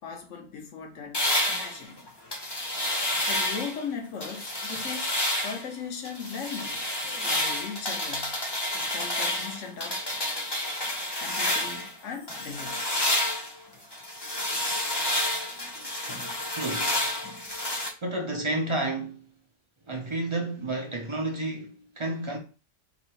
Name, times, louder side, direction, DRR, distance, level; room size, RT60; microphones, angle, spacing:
voice 1, 0.0-2.0 3.3-5.1 5.4-6.9 7.2-8.4 8.7-10.0 11.2-13.3, left 6 dB, 70° left, 1.2 m, -38 dB
sound 1, 1.1-3.8 4.2-5.7 6.0-11.9 12.3-17.9, left 1 dB, 25° left, 0.7 m, -29 dB
voice 2, 16.6-16.9 18.0-19.2 19.9-22.4, right 2 dB, 35° right, 0.5 m, -30 dB
3.1 x 2.8 x 4.2 m
omnidirectional pair, 1.3 m